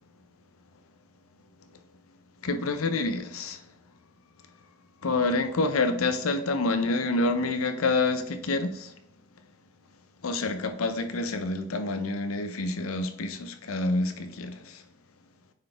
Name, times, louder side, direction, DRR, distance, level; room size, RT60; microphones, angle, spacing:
voice 1, 2.4-3.7 5.0-8.9 10.2-14.8, left 3 dB, 80° left, 0.6 m, -28 dB
9.3 x 4.2 x 3.3 m
head